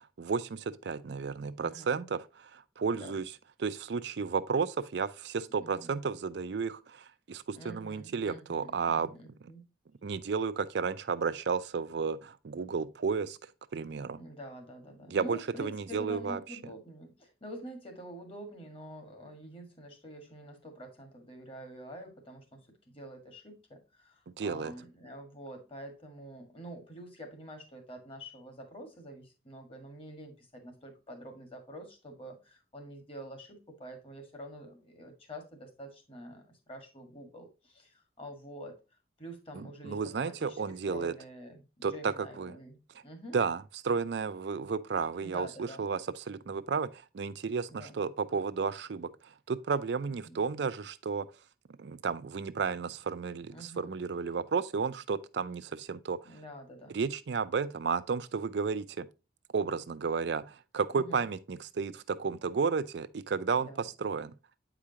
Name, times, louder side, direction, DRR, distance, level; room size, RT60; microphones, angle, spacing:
voice 1, 0.0-3.2 3.6-9.1 10.0-13.4 13.7-14.2 15.1-16.4 24.4-24.7 39.5-41.1 41.8-42.5 43.3-49.1 49.5-51.3 51.8-56.2 56.9-59.1 59.5-64.3, right 5 dB, 65° right, 0.4 m, -32 dB
voice 2, 1.6-2.0 2.9-3.1 5.6-5.9 7.5-9.6 14.1-22.7 22.9-38.8 39.2-42.8 43.0-43.4 45.2-45.8 47.7-48.0 50.1-50.4 53.5-54.0 56.2-57.0 60.9-61.2 63.5-63.9, equal, 30° left, 1.6 m, -47 dB
8.3 x 4.9 x 2.8 m
head